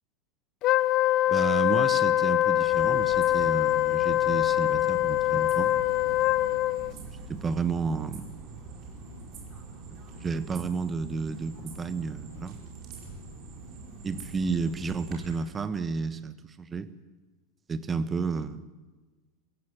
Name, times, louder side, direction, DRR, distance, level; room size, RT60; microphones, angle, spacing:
Wind instrument woodwind instrument, 0.6-6.9, left 14 dB, 35° left, 0.6 m, -24 dB
voice 1, 1.3-5.7 7.0-8.3 10.1-12.6 14.0-16.9 17.7-18.6, right 5 dB, 20° right, 13 dB, 1.2 m, -31 dB
sound 1, 2.7-15.4, right 4 dB, 35° right, 5.0 m, -44 dB
sound 2, 9.0-9.4 10.1-10.4 11.0-11.4 12.2-12.6 12.9-13.4 14.0-14.4 15.0-15.4, left 4 dB, 65° left, 2.4 m, -51 dB
24.5 x 15.5 x 7.6 m, 1.3 s
figure-of-eight pair, 90°, 0 cm